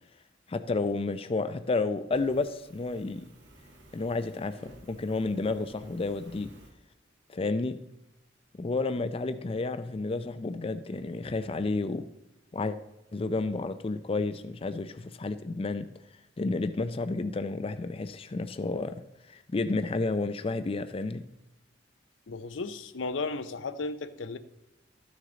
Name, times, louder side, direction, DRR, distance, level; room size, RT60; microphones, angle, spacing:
voice 1, 0.5-3.3 3.9-6.5 7.3-7.8 8.5-12.1 12.5-12.8 13.1-15.9 16.4-19.0 19.3-21.2, left 3 dB, 30° left, 10 dB, 0.4 m, -31 dB
Fire, 2.1-6.7, right 1 dB, 65° right, 2.1 m, -54 dB
voice 2, 22.3-24.4, left 3 dB, 85° left, 11 dB, 0.6 m, -34 dB
13.0 x 6.4 x 3.9 m, 0.94 s
head